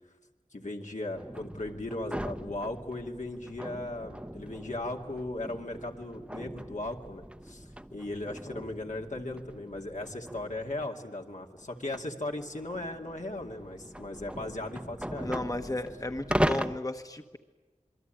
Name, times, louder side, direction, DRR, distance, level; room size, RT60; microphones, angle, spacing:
voice 1, 0.5-7.6 7.9-15.3, left 2 dB, 75° left, 1 dB, 2.4 m, -37 dB
sound 1, 1.1-10.8 11.6-16.8, equal, 10° right, 0.9 m, -38 dB
voice 2, 15.2-17.4, left 2 dB, 30° left, 7 dB, 1.2 m, -34 dB
27.0 x 23.0 x 9.1 m, 1.3 s
wide cardioid pair, 45°, 13 cm